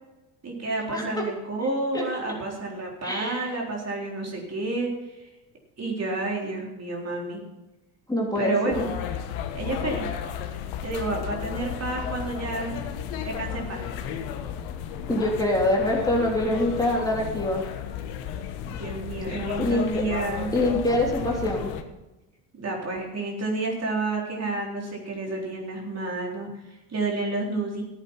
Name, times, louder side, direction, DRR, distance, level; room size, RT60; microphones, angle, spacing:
voice 1, 0.4-5.3 5.8-7.4 8.4-8.9 9.5-10.1 10.8-12.8 13.2-13.8 18.8-20.5 22.5-27.8, right 2 dB, 35° right, -1 dB, 3.9 m, -30 dB
voice 2, 3.0-3.5 8.1-8.8 15.1-17.7 19.6-20.0 20.5-21.7, left 1 dB, 10° left, -2 dB, 3.1 m, -24 dB
sound 1, 8.7-21.8, left 9 dB, 70° left, 1.4 m, -33 dB
14.5 x 8.1 x 5.6 m, 1.0 s
hypercardioid pair, 75°, 46 cm